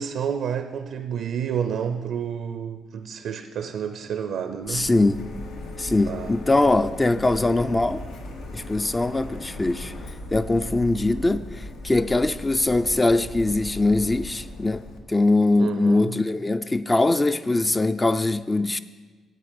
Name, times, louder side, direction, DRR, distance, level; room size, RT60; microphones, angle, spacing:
voice 1, 0.0-4.9 6.1-6.3 15.6-16.2, right 7 dB, 75° right, 0.5 m, -30 dB
Printer, 4.6-15.0, left 1 dB, 90° left, 1.1 m, -38 dB
voice 2, 4.7-5.2 5.8-8.0 8.5-18.8, left 2 dB, 20° left, 0.3 m, -22 dB
9.2 x 7.7 x 5.1 m
cardioid pair, 90°, 0 cm